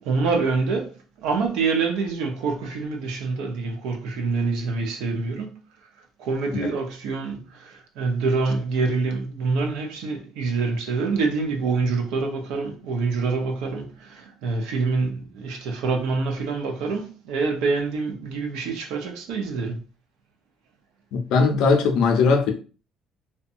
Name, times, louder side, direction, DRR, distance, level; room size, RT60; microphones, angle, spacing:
voice 1, 0.0-5.6 6.2-19.8, right 4 dB, 75° right, 0.7 m, -26 dB
voice 2, 21.1-22.5, left 4 dB, 65° left, 0.5 m, -19 dB
2.7 x 2.2 x 2.6 m
cardioid pair, 170°, 0 cm